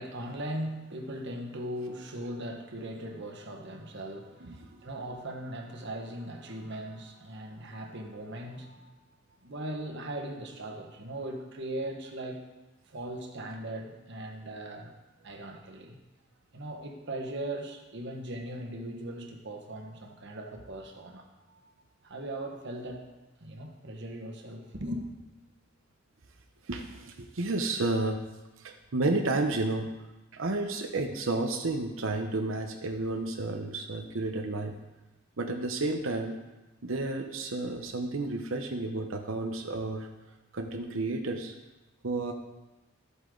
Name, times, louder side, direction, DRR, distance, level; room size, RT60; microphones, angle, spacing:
voice 1, 0.0-8.9 9.4-12.5 12.9-14.9 15.2-16.0 16.5-21.6 22.0-23.1 23.4-25.1, right 1 dB, 60° right, 3 dB, 1.4 m, -39 dB
voice 2, 26.7-28.2 28.6-29.9 30.3-34.7 35.4-36.4 36.8-40.1 40.5-41.5 42.0-42.3, right 2 dB, 80° right, 4 dB, 0.9 m, -31 dB
13.0 x 8.2 x 3.9 m, 1.1 s
head